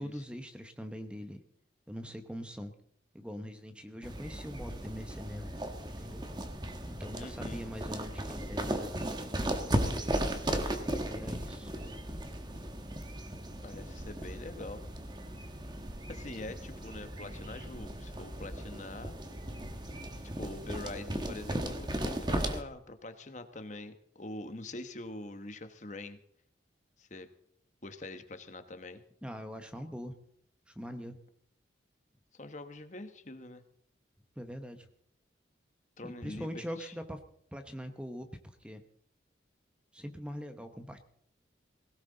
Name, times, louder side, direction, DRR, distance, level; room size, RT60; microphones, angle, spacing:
voice 1, 0.0-1.4 1.9-2.7 3.1-5.5 6.0-6.2 6.9-9.1 10.7-11.7 29.2-30.2 30.7-31.2 34.4-34.9 36.0-37.2 37.5-38.8 39.9-41.0, equal, 5° right, 7 dB, 0.9 m, -42 dB
sound 1, 4.0-22.6, right 1 dB, 25° right, 1.3 m, -36 dB
voice 2, 7.2-7.6 13.6-14.8 16.1-19.1 20.2-26.2 27.0-27.3 27.8-29.0 32.3-33.6 36.0-36.9, left 2 dB, 40° left, 9 dB, 1.1 m, -44 dB
20.0 x 17.5 x 3.9 m, 0.67 s
head